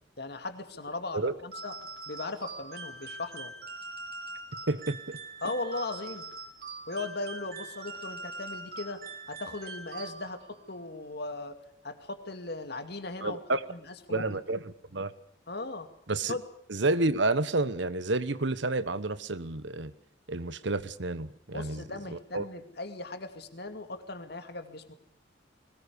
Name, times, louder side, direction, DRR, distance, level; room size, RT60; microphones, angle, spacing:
voice 1, 0.2-1.7 2.1-3.5 5.4-6.3 6.9-13.4 13.7-14.3 15.5-15.9 16.3-16.4 21.5-24.9, left 2 dB, 55° left, 8 dB, 2.3 m, -38 dB
sound 1, 1.5-10.6, right 3 dB, 50° right, 3.6 m, -43 dB
voice 2, 4.7-5.2 13.2-13.6 14.1-15.1 16.1-16.4 16.7-19.9 20.3-21.8 22.1-22.5, right 2 dB, 65° right, 15 dB, 1.1 m, -30 dB
21.5 x 19.5 x 8.3 m, 0.63 s
head